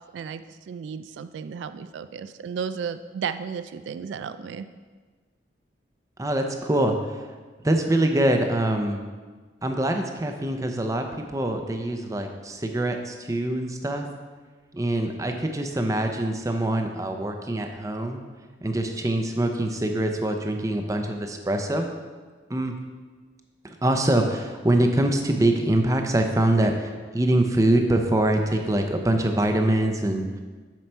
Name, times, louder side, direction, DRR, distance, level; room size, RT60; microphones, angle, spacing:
voice 1, 0.1-4.7, right 6 dB, 85° right, 11 dB, 0.3 m, -34 dB
voice 2, 6.2-7.2 7.6-9.0 9.6-11.0 11.3-14.1 14.7-18.2 18.6-21.9 22.5-22.7 23.6-30.2, right 1 dB, 20° right, 4 dB, 0.6 m, -24 dB
7.6 x 5.4 x 4.5 m, 1.4 s
head